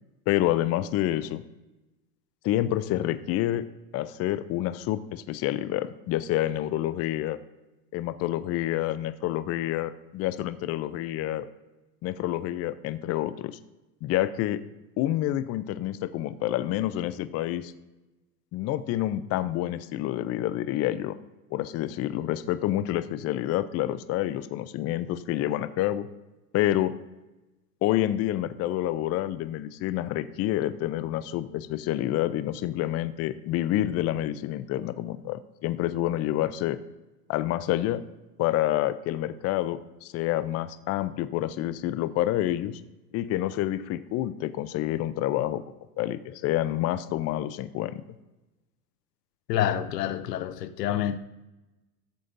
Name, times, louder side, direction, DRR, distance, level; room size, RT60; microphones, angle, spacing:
voice 1, 0.3-1.4 2.4-3.6 3.9-7.4 7.9-11.5 12.0-13.6 14.0-14.6 15.0-17.7 18.5-21.2 21.5-26.1 26.5-26.9 27.8-36.8 37.3-38.0 38.4-42.8 43.1-45.6 46.0-48.0, left 13 dB, 35° left, 0.5 m, -28 dB
voice 2, 49.5-51.2, left 11 dB, 85° left, 0.7 m, -27 dB
14.0 x 7.6 x 2.6 m
hypercardioid pair, 95°, 47 cm